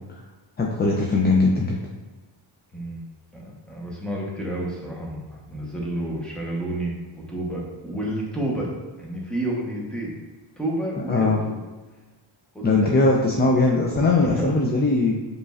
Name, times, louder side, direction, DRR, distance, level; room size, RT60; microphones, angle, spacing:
voice 1, 0.6-1.8 11.1-11.4 12.6-15.2, left 3 dB, 25° left, -1 dB, 0.3 m, -20 dB
voice 2, 2.7-3.0 3.3-8.7 9.0-10.1 10.6-11.7 12.5-12.9 14.2-14.6, right 1 dB, ahead, -4 dB, 0.9 m, -30 dB
5.0 x 3.2 x 2.4 m, 1.2 s
cardioid pair, 120°, 49 cm